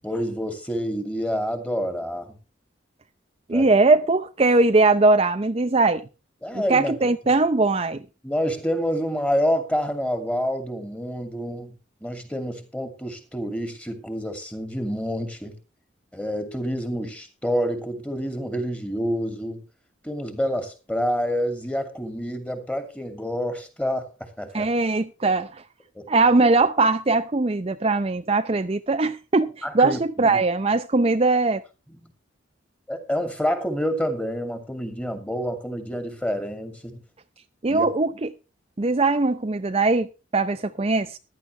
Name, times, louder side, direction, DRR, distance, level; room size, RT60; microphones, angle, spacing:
voice 1, 0.0-2.4 3.5-3.7 6.4-6.9 8.2-11.7 12.0-15.5 16.1-19.6 20.0-24.1 24.4-24.7 26.0-26.2 29.6-30.0 30.3-30.4 32.9-37.0 37.7-37.9, equal, 5° left, 2.5 m, -28 dB
voice 2, 3.5-6.0 6.5-8.0 24.5-25.6 26.1-31.6 37.6-38.3 38.8-41.2, right 3 dB, 30° right, 0.6 m, -20 dB
15.0 x 12.0 x 3.3 m
head